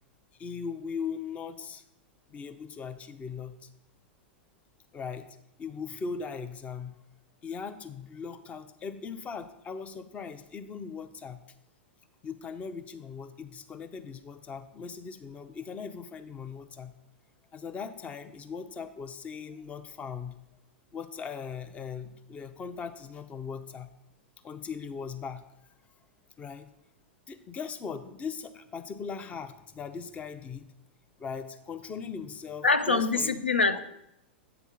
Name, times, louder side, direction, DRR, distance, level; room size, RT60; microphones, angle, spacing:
voice 1, 0.4-1.8 2.3-3.7 4.9-5.3 5.6-7.0 7.4-11.4 12.2-16.9 17.5-20.4 20.9-23.9 24.4-25.4 26.4-26.7 27.3-30.7 31.2-33.4, left 6 dB, 20° left, 0.6 m, -39 dB
voice 2, 32.6-33.8, left 3 dB, 90° left, 0.4 m, -24 dB
7.7 x 3.5 x 5.6 m
figure-of-eight pair, 100°, 6 cm